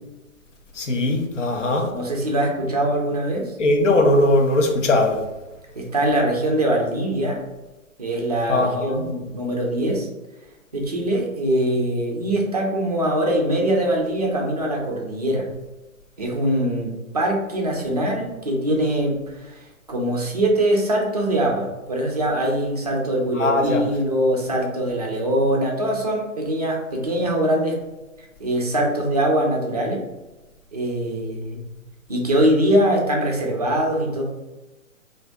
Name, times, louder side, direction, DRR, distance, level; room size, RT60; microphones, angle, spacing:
voice 1, 0.8-1.9 3.6-5.2 8.5-9.1 23.4-23.8, left 2 dB, 60° left, 3 dB, 0.7 m, -19 dB
voice 2, 1.9-3.5 5.8-7.4 8.0-10.1 10.7-15.4 16.2-19.6 19.9-27.8 28.4-30.0 30.7-31.6 32.1-34.2, right 1 dB, 30° right, 0 dB, 0.4 m, -22 dB
2.5 x 2.4 x 3.3 m, 1.1 s
figure-of-eight pair, 130°, 41 cm